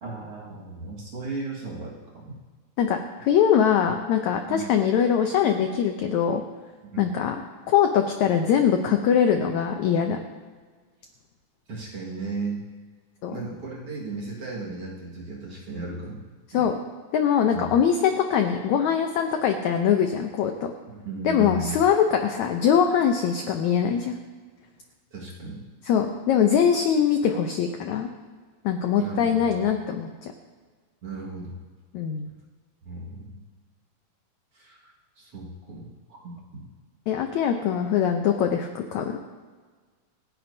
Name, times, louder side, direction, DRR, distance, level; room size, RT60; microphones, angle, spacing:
voice 1, 0.0-2.4 4.5-4.6 6.9-7.2 11.7-12.6 13.3-16.3 16.5-16.7 17.5-17.7 20.9-21.8 25.1-25.6 29.0-29.4 31.0-31.5 32.9-33.4 34.5-35.9 36.2-36.7, right 3 dB, 45° right, -4 dB, 2.3 m, -35 dB
voice 2, 2.8-6.4 7.0-7.4 7.7-10.2 13.2-13.4 16.5-16.8 17.1-20.7 21.2-24.2 25.9-28.1 28.6-30.3 31.9-32.3 37.1-39.2, left 8 dB, 85° left, 5 dB, 1.6 m, -22 dB
27.5 x 10.5 x 2.7 m, 1.5 s
omnidirectional pair, 4.3 m